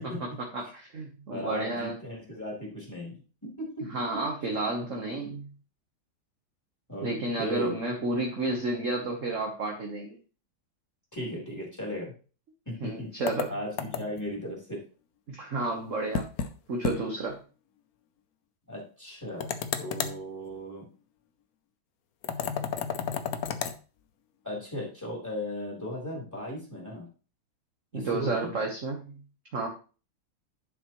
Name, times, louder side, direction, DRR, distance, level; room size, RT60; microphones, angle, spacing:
voice 1, 0.0-0.4 1.3-3.9 4.1-4.2 5.2-5.3 6.9-7.1 7.4-7.8 11.1-12.1 12.7-13.1 13.5-14.8 18.7-20.9 24.4-27.1 27.9-28.5, equal, 10° left, -3 dB, 3.4 m, -37 dB
voice 2, 0.5-1.9 3.9-5.4 7.0-10.2 12.8-13.5 15.3-16.2 16.7-17.4 27.9-29.1 29.5-29.7, right 2 dB, 45° right, 1 dB, 1.3 m, -31 dB
sound 1, 13.3-14.3 16.1-16.5 16.8-17.0 17.3-17.4 19.4-20.2 22.2-23.8, left 7 dB, 65° left, 0.9 m, -32 dB
10.5 x 6.1 x 3.1 m, 0.35 s
omnidirectional pair, 2.3 m